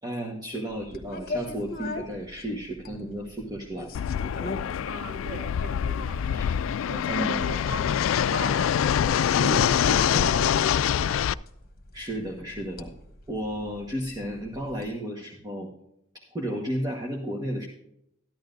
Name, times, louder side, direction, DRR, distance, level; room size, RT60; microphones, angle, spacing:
voice 1, 0.0-3.9 6.3-6.5 7.1-7.4 9.3-10.3 11.9-12.9 13.3-15.7 16.1-17.7, equal, 20° right, 0 dB, 1.3 m, -33 dB
sound 1, 0.7-14.9, left 2 dB, 50° left, 1.3 m, -42 dB
Fixed-wing aircraft airplane, 3.9-11.3, left 9 dB, 75° left, 0.3 m, -25 dB
voice 2, 4.8-6.4 6.9-11.2, right 2 dB, 45° right, 0 dB, 2.9 m, -40 dB
13.5 x 11.0 x 2.6 m, 0.76 s
head